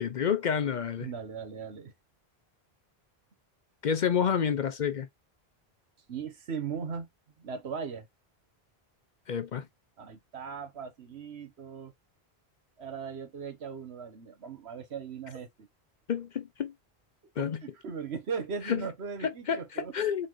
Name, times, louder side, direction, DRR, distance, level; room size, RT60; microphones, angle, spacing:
voice 1, 0.0-1.1 3.8-5.1 9.3-9.7 16.1-16.7 17.4-17.6 18.7-18.8 19.5-20.3, left 7 dB, 55° left, 0.6 m, -29 dB
voice 2, 1.0-1.9 6.1-7.1 7.4-8.1 10.0-11.9 12.8-15.7 17.4-19.9, right 6 dB, 85° right, 1.3 m, -38 dB
4.1 x 3.6 x 3.0 m
omnidirectional pair, 1.1 m